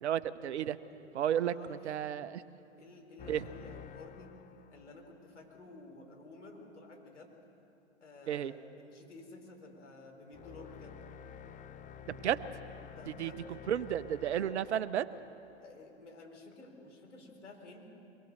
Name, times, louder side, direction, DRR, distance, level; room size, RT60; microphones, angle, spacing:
voice 1, 0.0-0.8 1.1-2.4 3.3-3.4 8.3-8.5 12.1-12.4 13.1-13.3 13.7-15.1, right 10 dB, 70° right, 14 dB, 1.0 m, -32 dB
voice 2, 1.5-1.9 2.8-4.4 4.7-7.4 8.0-11.0 12.9-13.4 15.6-17.8, left 2 dB, 85° left, 2 dB, 4.4 m, -52 dB
sound 1, 3.2-5.2 10.3-16.0, left 7 dB, 20° left, 1.0 m, -50 dB
24.0 x 21.5 x 6.6 m, 2.8 s
hypercardioid pair, 100°, 35 cm